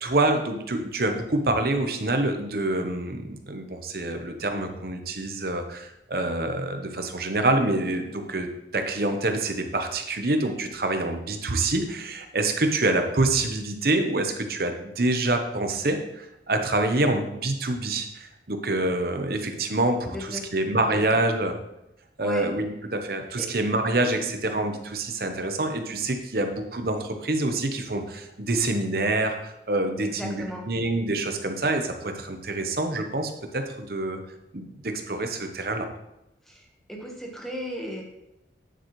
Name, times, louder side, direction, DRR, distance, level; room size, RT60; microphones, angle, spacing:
voice 1, 0.0-21.5 22.2-34.2 34.5-35.9, right 2 dB, 55° right, 6 dB, 0.9 m, -26 dB
voice 2, 20.0-20.5 20.9-21.2 22.2-22.5 23.4-23.5 30.0-30.7 36.4-38.2, equal, ahead, 0 dB, 1.2 m, -36 dB
9.3 x 7.7 x 3.2 m, 0.88 s
head